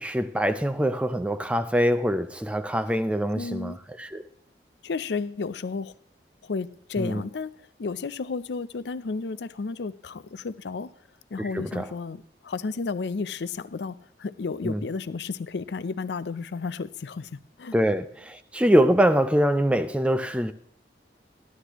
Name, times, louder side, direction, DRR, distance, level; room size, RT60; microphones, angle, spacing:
voice 1, 0.0-4.2 7.0-7.2 11.4-11.9 14.6-14.8 17.7-20.5, equal, 5° right, 0.4 m, -24 dB
voice 2, 3.4-3.8 4.8-5.9 6.4-10.9 11.3-17.8, left 4 dB, 75° left, 0.5 m, -32 dB
14.5 x 11.5 x 3.0 m
head